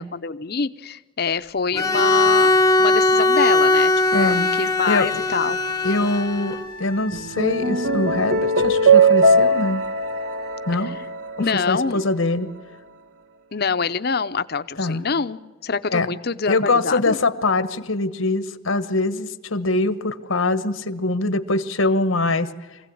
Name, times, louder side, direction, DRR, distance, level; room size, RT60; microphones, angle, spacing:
voice 1, 0.0-2.5 2.8-5.6 10.8-10.9 11.4-12.0 13.5-17.2, left 5 dB, 50° left, 12 dB, 0.7 m, -25 dB
Bowed string instrument, 1.7-6.7, left 2 dB, 15° left, 0.9 m, -19 dB
voice 2, 4.1-4.5 4.9-5.2 5.8-9.8 10.7-10.9 11.7-12.5 14.8-15.0 15.9-16.1 16.5-22.5, left 2 dB, 80° left, 12 dB, 1.2 m, -23 dB
Wind instrument woodwind instrument, 6.0-10.9, right 2 dB, 45° right, 4.5 m, -39 dB
sound 1, 7.1-11.7, right 2 dB, 70° right, 1.3 m, -19 dB
24.5 x 16.5 x 8.6 m, 1.3 s
head